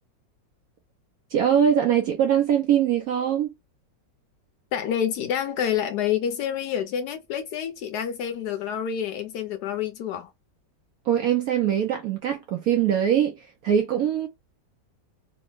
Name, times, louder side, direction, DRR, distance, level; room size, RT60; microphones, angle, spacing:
voice 1, 1.3-3.5 11.1-13.3 13.6-14.3, right 9 dB, 70° right, 0.8 m, -22 dB
voice 2, 4.7-10.3, left 9 dB, 70° left, 1.0 m, -28 dB
3.3 x 2.0 x 3.0 m
omnidirectional pair, 2.0 m